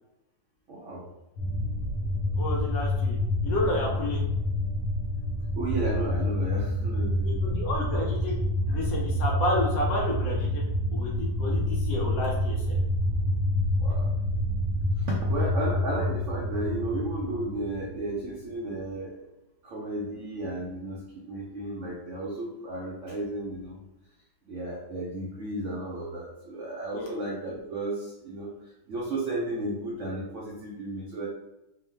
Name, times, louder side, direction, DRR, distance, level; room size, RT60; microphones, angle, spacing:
voice 1, 0.7-1.1 5.5-7.5 13.8-14.1 15.0-19.3 19.6-23.8 24.5-28.5 28.9-31.3, right 1 dB, 80° right, -3 dB, 0.6 m, -33 dB
sound 1, 1.4-18.2, left 1 dB, 85° left, 1.2 m, -28 dB
voice 2, 2.4-3.2 3.4-4.2 7.2-8.4 8.7-10.6 10.9-12.8 26.9-27.1 27.5-27.6, left 1 dB, 65° left, -2 dB, 1.0 m, -31 dB
3.0 x 2.0 x 3.2 m, 0.91 s
omnidirectional pair, 1.9 m